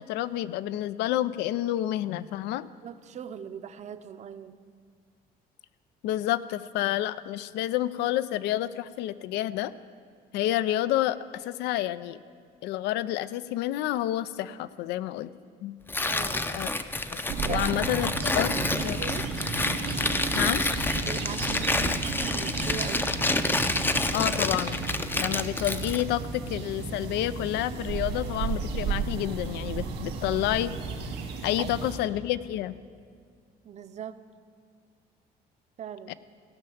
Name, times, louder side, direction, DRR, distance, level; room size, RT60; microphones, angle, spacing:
voice 1, 0.0-2.7 6.0-9.7 10.3-12.2 12.6-15.3 15.6-15.7 16.5-16.7 17.1-18.5 18.8-19.1 20.4-20.6 24.1-24.8 25.2-30.7 31.4-32.8 36.1-36.2, left 13 dB, 85° left, 16 dB, 0.4 m, -29 dB
voice 2, 2.8-4.6 16.1-16.5 17.4-19.3 21.0-23.1 31.6-31.7 33.6-34.2 35.8-36.1, right 8 dB, 45° right, 11 dB, 0.6 m, -40 dB
Tearing, 15.9-26.1, left 2 dB, 10° left, 0.5 m, -29 dB
sound 1, 17.3-32.0, right 4 dB, 85° right, 1.8 m, -33 dB
16.5 x 5.8 x 7.0 m, 2.1 s
cardioid pair, 110°, 17 cm